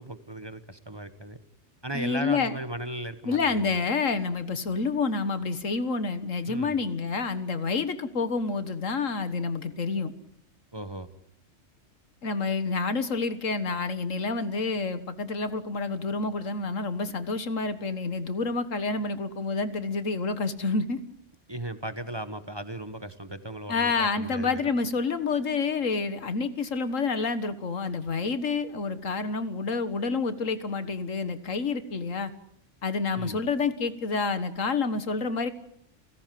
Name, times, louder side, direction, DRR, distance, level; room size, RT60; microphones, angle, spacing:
voice 1, 0.0-1.4 1.8-3.7 6.5-6.8 10.7-11.1 21.5-24.7 33.2-33.4, right 1 dB, 20° right, 11 dB, 1.2 m, -36 dB
voice 2, 1.9-2.5 3.3-10.1 12.2-21.0 23.7-32.3 32.8-35.5, left 4 dB, 90° left, 12 dB, 1.9 m, -28 dB
30.0 x 17.0 x 7.7 m, 0.69 s
omnidirectional pair, 1.3 m